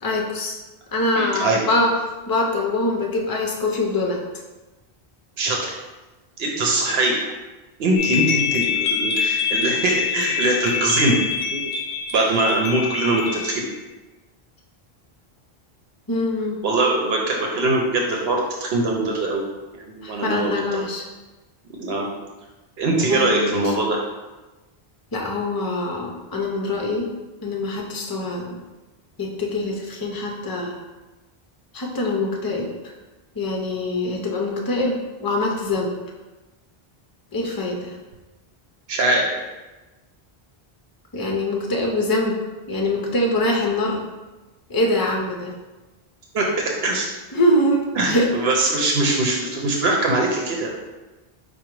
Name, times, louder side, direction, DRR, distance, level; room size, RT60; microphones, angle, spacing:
voice 1, 0.0-0.6 0.9-1.9 2.3-4.2 16.1-16.6 20.0-21.0 23.1-23.7 25.1-27.1 27.4-28.6 29.2-30.8 31.7-32.9 33.4-35.9 37.3-38.0 41.1-42.4 42.7-44.0 44.7-45.5 47.3-48.3, left 1 dB, 25° left, 0 dB, 0.5 m, -24 dB
voice 2, 1.2-1.6 5.4-5.7 6.4-7.2 7.8-11.2 11.5-11.6 12.1-13.6 16.6-19.4 19.8-20.8 21.8-22.1 22.8-24.0 38.9-39.3 46.3-47.1 48.0-50.7, right 2 dB, 80° right, 0 dB, 0.9 m, -22 dB
sound 1, 8.0-13.6, left 7 dB, 70° left, 0.8 m, -25 dB
4.8 x 2.2 x 4.5 m, 1.1 s
omnidirectional pair, 1.0 m